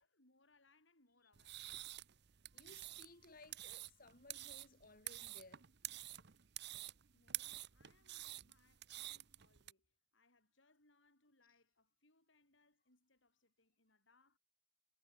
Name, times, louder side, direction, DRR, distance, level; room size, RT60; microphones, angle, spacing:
voice 1, 0.0-1.7 7.1-14.4, left 2 dB, 70° left, 6.8 m, -74 dB
sound 1, 1.3-9.7, right 15 dB, 55° right, 0.8 m, -49 dB
voice 2, 2.5-5.6, left 2 dB, 45° left, 2.9 m, -61 dB
head